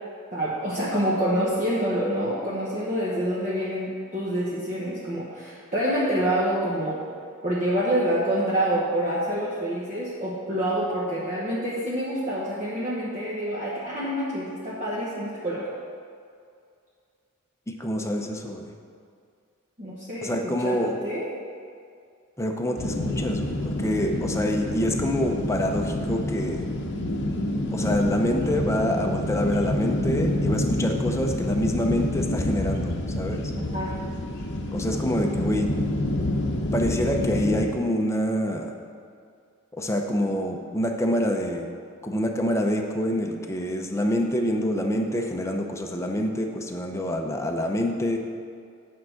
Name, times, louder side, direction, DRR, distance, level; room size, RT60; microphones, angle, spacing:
voice 1, 0.3-7.0 7.4-15.7 19.8-21.3 33.6-33.9, right 1 dB, 35° right, -7 dB, 1.1 m, -27 dB
voice 2, 17.7-18.8 20.2-21.0 22.4-26.6 27.7-33.5 34.7-35.7 36.7-38.7 39.7-41.6 42.0-48.2, equal, 15° left, 2 dB, 0.6 m, -26 dB
sound 1, 22.8-37.7, left 1 dB, 55° left, 0.8 m, -28 dB
8.6 x 4.7 x 6.4 m, 2.3 s
head